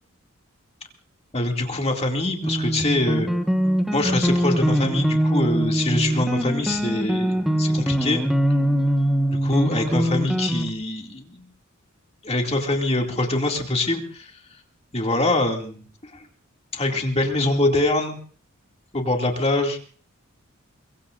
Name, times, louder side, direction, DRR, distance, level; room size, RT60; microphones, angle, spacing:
voice 1, 1.3-3.3 3.9-8.2 9.4-11.4 12.2-14.3 14.9-16.3 16.7-18.2 18.9-19.8, left 2 dB, 30° left, 2 dB, 2.5 m, -24 dB
sound 1, 2.4-10.7, equal, ahead, 1.3 m, -22 dB
23.5 x 23.0 x 2.6 m, 0.42 s
head